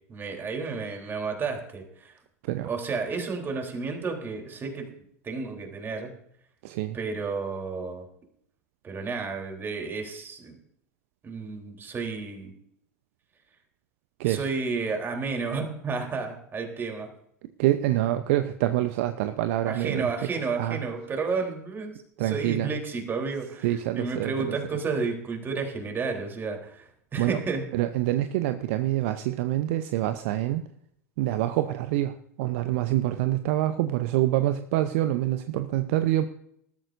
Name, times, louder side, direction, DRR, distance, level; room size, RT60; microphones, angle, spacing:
voice 1, 0.1-2.1 2.6-4.9 5.2-6.1 6.9-8.1 8.8-10.6 11.2-12.5 14.2-17.1 19.7-26.9 27.1-27.7, right 4 dB, 25° right, 3 dB, 3.6 m, -31 dB
voice 2, 6.6-7.0 14.2-14.4 17.6-20.3 20.6-20.9 22.2-22.7 23.6-24.5 27.2-27.4 27.7-30.6 31.2-36.3, right 14 dB, 55° right, 10 dB, 0.8 m, -26 dB
20.0 x 13.5 x 2.6 m, 0.70 s
figure-of-eight pair, 85°, 9 cm